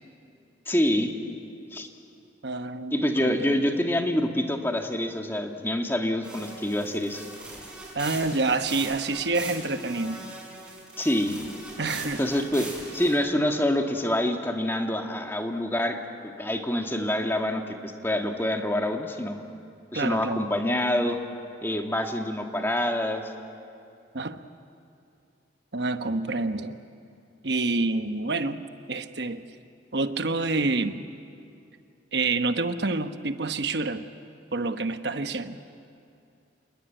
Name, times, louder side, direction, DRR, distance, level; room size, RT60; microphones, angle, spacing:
voice 1, 0.7-1.1 1.7-1.9 2.9-7.2 11.0-11.4 12.2-19.4 19.9-21.2 21.6-23.3, left 1 dB, 10° left, 3 dB, 1.7 m, -26 dB
voice 2, 2.4-3.6 7.9-10.2 11.8-12.3 19.9-20.4 24.1-24.4 25.7-26.8 27.4-28.6 28.9-29.4 29.9-31.0 32.1-34.1 34.5-35.6, right 3 dB, 65° right, 9 dB, 1.1 m, -27 dB
sound 1, 6.2-13.1, right 2 dB, 5° right, 6.3 m, -40 dB
28.0 x 20.5 x 9.1 m, 2.5 s
head